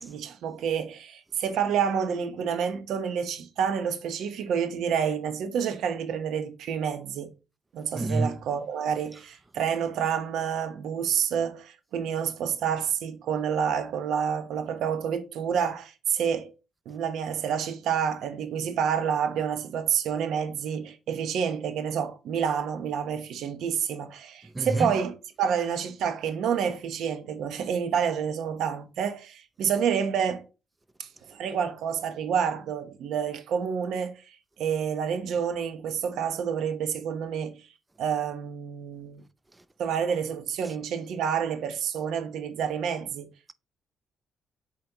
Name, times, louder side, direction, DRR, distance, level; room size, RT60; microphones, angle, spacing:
voice 1, 0.0-7.3 7.7-16.5 16.9-30.4 31.0-34.2 34.6-37.6 38.0-39.2 39.8-43.3, right 7 dB, 80° right, 1.0 m, -28 dB
voice 2, 7.9-8.4 24.5-24.9, right 2 dB, 15° right, 0.5 m, -27 dB
7.5 x 4.2 x 3.0 m
cardioid pair, 90°, 0 cm